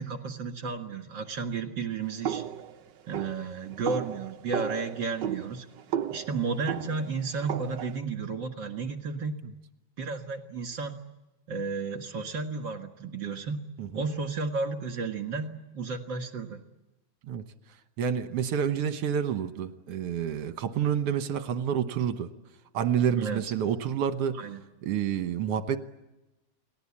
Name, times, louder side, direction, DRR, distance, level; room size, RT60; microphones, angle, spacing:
voice 1, 0.0-2.4 3.1-5.7 6.1-9.4 10.0-11.0 11.5-13.6 13.9-15.5 15.7-16.6 23.2-23.5 24.4-24.6, right 4 dB, 45° right, 6 dB, 2.1 m, -33 dB
sound 1, 2.2-8.0, right 9 dB, 90° right, 0.9 m, -35 dB
voice 2, 18.0-22.3 22.7-24.4 24.8-25.8, right 8 dB, 60° right, 10 dB, 1.9 m, -28 dB
29.5 x 20.0 x 8.6 m, 1.0 s
omnidirectional pair, 3.5 m